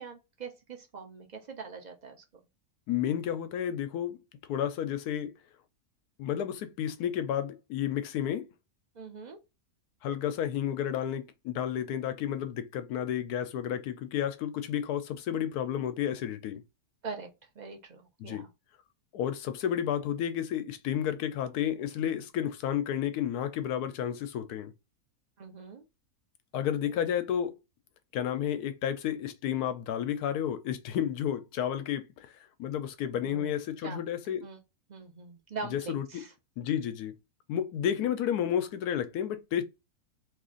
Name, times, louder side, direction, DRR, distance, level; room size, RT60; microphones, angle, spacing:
voice 1, 0.0-2.2 8.9-9.4 17.0-17.3 17.6-18.5 25.4-25.8 26.5-26.6 33.2-33.5 33.8-34.0 34.4-34.6 34.9-36.3, right 4 dB, 50° right, 0.5 m, -42 dB
voice 2, 2.9-4.2 4.5-5.3 6.2-8.5 10.0-16.6 18.2-18.5 19.1-24.7 26.5-27.6 28.1-32.3 32.6-34.4 35.7-36.2 36.6-37.1 37.5-39.6, left 10 dB, 85° left, 1.2 m, -31 dB
3.1 x 2.5 x 3.7 m
omnidirectional pair, 1.6 m